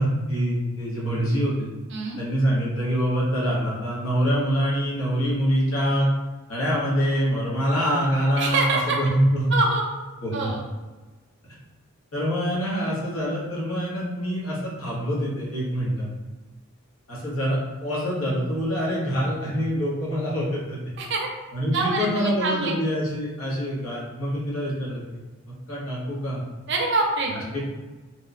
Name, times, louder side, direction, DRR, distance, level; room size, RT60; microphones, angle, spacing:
voice 1, 0.0-1.7 2.2-6.1 6.5-9.6 10.2-10.5 12.1-16.1 17.1-20.8 21.5-25.0 25.5-26.4 27.3-27.6, equal, 85° left, -6 dB, 1.0 m, -25 dB
voice 2, 8.4-9.0 9.5-9.9 10.3-10.6 21.0-21.3 21.7-22.8 26.7-27.3, right 3 dB, 55° right, 0 dB, 0.5 m, -25 dB
2.9 x 2.0 x 2.4 m, 1.2 s
head